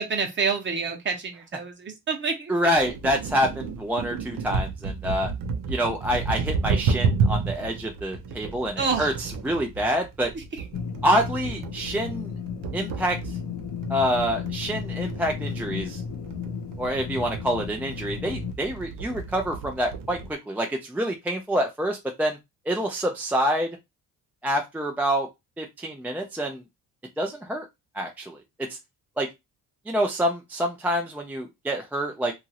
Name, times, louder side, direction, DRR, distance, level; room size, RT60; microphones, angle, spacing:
voice 1, 0.0-2.5 8.8-9.1, right 5 dB, 35° right, 0.8 m, -27 dB
voice 2, 2.5-5.3 5.7-10.3 11.0-12.3 12.7-13.2 13.9-16.0 16.8-22.4 22.7-23.7 24.4-25.3 25.6-26.6 27.2-27.7 27.9-28.8 29.2-29.3 29.9-32.3, equal, 5° right, 0.3 m, -27 dB
sound 1, 2.7-20.3, right 4 dB, 70° right, 0.6 m, -31 dB
sound 2, 10.7-18.5, left 7 dB, 85° left, 0.7 m, -34 dB
2.9 x 2.4 x 2.8 m
cardioid pair, 135°, 35 cm